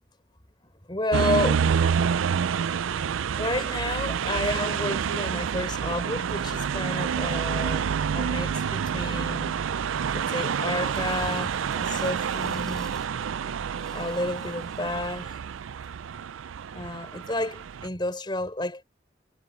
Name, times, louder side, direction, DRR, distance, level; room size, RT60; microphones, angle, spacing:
voice 1, 0.6-1.8 3.4-9.6 10.1-12.9 13.9-15.4 16.7-18.8, left 1 dB, 25° left, 4.3 m, -31 dB
sound 1, 1.1-17.9, right 7 dB, 85° right, 0.4 m, -28 dB
sound 2, 3.4-4.4 5.1-5.2 5.5-15.5 15.8-16.2, equal, ahead, 6.6 m, -48 dB
head